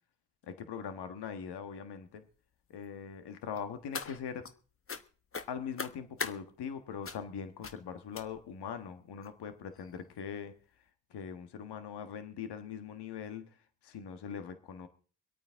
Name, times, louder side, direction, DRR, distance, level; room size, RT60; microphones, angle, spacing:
voice 1, 0.5-2.3 2.7-4.4 5.5-10.5 11.1-13.5 13.8-14.9, left 7 dB, 70° left, 9 dB, 1.6 m, -41 dB
sound 1, 3.6-4.5 4.9-5.0 5.3-6.4 7.0-7.3 7.6-7.8 8.1-8.6 9.2-9.3 9.7-9.9 10.2-10.3, left 5 dB, 30° left, 1.1 m, -40 dB
24.5 x 8.8 x 3.6 m, 0.40 s
supercardioid pair, 55°, 42 cm